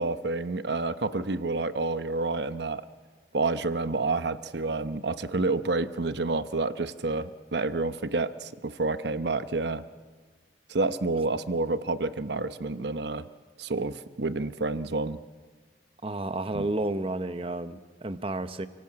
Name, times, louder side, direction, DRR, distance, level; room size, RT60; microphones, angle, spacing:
voice 1, 0.0-2.8 3.3-9.8 10.7-13.3 13.6-15.2 16.5-16.7, right 3 dB, 70° right, 0.9 m, -29 dB
voice 2, 16.0-18.7, right 2 dB, 30° right, 0.9 m, -31 dB
29.5 x 17.5 x 8.6 m
head